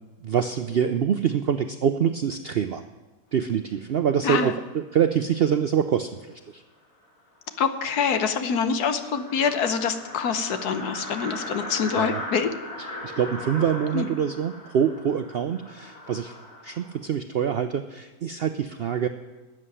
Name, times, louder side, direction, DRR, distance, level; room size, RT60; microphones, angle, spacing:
voice 1, 0.2-2.8 3.3-6.6 12.0-12.2 13.0-16.3 16.6-19.1, right 8 dB, 70° right, 9 dB, 0.5 m, -25 dB
sound 1, 7.0-7.1 7.5-7.6 7.9-8.0 8.2-17.0, left 1 dB, 60° left, 3.0 m, -39 dB
voice 2, 7.6-12.5 13.9-14.1, left 6 dB, 80° left, 9 dB, 1.5 m, -25 dB
13.0 x 7.7 x 9.8 m, 1.2 s
omnidirectional pair, 1.6 m